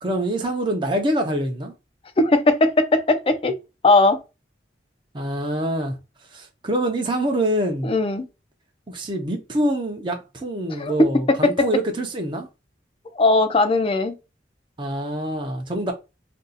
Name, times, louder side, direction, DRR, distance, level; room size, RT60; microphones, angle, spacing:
voice 1, 0.0-1.7 5.1-6.0 6.3-7.9 8.9-12.5 14.8-15.9, right 1 dB, 25° right, 0.5 m, -25 dB
voice 2, 2.2-3.6 3.8-4.2 7.8-8.2 10.8-10.9 11.3-11.5 13.1-14.2, left 2 dB, 30° left, 0.4 m, -18 dB
2.6 x 2.3 x 3.9 m
head